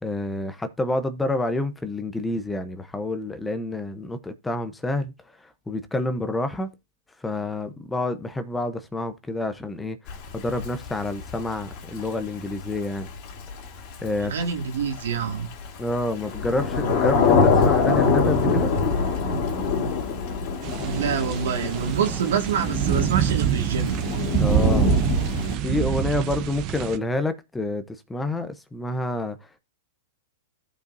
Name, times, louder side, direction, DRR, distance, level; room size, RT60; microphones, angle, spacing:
voice 1, 0.0-5.1 5.4-6.7 7.2-13.1 14.0-14.3 15.8-18.7 24.4-24.9 25.6-29.4, left 2 dB, 10° left, 0.8 m, -28 dB
Thunder / Rain, 10.1-25.6, left 4 dB, 45° left, 2.6 m, -25 dB
voice 2, 14.2-15.5 20.8-24.0, right 7 dB, 80° right, 2.0 m, -26 dB
sound 1, 20.6-27.0, right 11 dB, 45° right, 0.8 m, -26 dB
14.5 x 5.3 x 2.6 m
hypercardioid pair, 135°, 0 cm